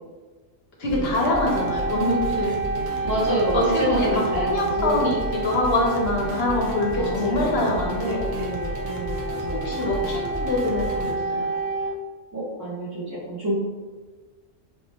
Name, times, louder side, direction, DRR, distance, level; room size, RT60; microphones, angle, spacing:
voice 1, 0.8-2.6 2.9-8.3 9.5-11.5, left 2 dB, 60° left, -2 dB, 0.8 m, -25 dB
sound 1, 0.8-11.1, right 1 dB, 85° right, 1.1 m, -34 dB
sound 2, 1.2-11.9, right 3 dB, 50° right, 0.9 m, -29 dB
voice 2, 3.0-5.1 6.9-7.8 8.0-10.2 12.3-13.5, right 1 dB, 20° right, -11 dB, 0.7 m, -28 dB
4.3 x 2.9 x 2.2 m, 1.4 s
omnidirectional pair, 1.3 m